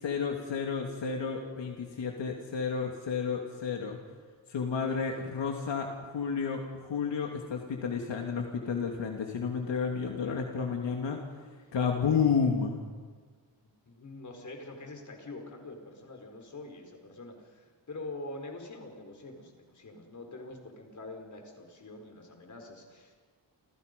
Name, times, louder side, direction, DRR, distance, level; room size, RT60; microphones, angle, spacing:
voice 1, 0.0-4.0 4.5-5.9 6.1-11.2 11.7-12.8, left 6 dB, 75° left, 1 dB, 2.7 m, -31 dB
voice 2, 13.9-23.1, left 2 dB, 40° left, 3 dB, 4.9 m, -45 dB
30.0 x 28.5 x 5.4 m, 1.5 s
wide cardioid pair, 155°, 44 cm